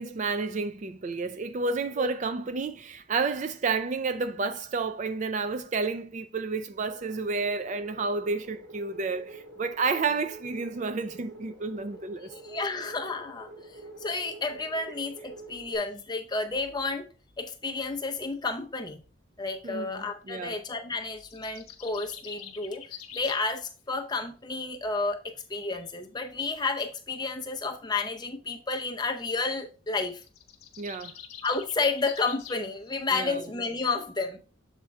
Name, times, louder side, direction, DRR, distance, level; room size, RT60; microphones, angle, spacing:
voice 1, 0.0-12.3 19.6-20.6 30.8-31.1 33.1-33.5, right 4 dB, 35° right, 0.3 m, -31 dB
sound 1, 6.9-15.8, right 2 dB, 50° right, 2.0 m, -47 dB
voice 2, 12.3-13.5 14.0-17.0 17.4-19.0 19.4-22.8 23.1-30.2 31.4-34.4, left 3 dB, 20° left, 0.6 m, -31 dB
sound 2, 21.2-23.5 30.1-32.7, left 9 dB, 85° left, 1.0 m, -45 dB
7.2 x 3.7 x 4.3 m
head